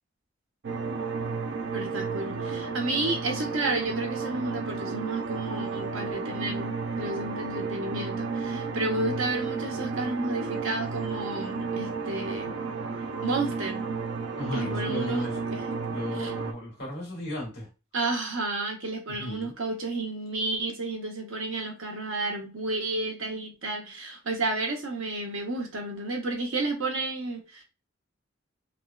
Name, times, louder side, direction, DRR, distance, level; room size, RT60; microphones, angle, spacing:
sound 1, 0.6-16.5, right 4 dB, 60° right, 0.4 m, -33 dB
voice 1, 1.7-12.6 13.2-13.9 14.5-15.6 16.2-16.3 17.9-27.6, right 2 dB, 85° right, 3 dB, 0.8 m, -31 dB
voice 2, 14.4-15.4 15.9-17.7 19.2-19.5, equal, 55° left, -2 dB, 1.6 m, -35 dB
3.3 x 2.2 x 2.3 m, 0.31 s
head